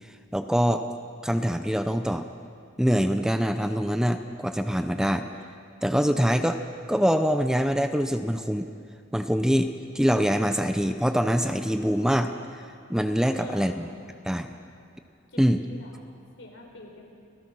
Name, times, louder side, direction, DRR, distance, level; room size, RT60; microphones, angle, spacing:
voice 1, 0.3-0.9 1.2-2.3 2.8-5.2 5.8-6.6 6.9-8.7 9.1-9.7 9.9-12.3 12.9-13.9 14.2-14.5 15.4-15.6, equal, 5° right, 8 dB, 0.7 m, -24 dB
voice 2, 13.4-13.8 15.3-16.0 16.4-17.0, left 2 dB, 80° left, 0 dB, 4.5 m, -45 dB
30.0 x 16.0 x 6.2 m, 2.4 s
head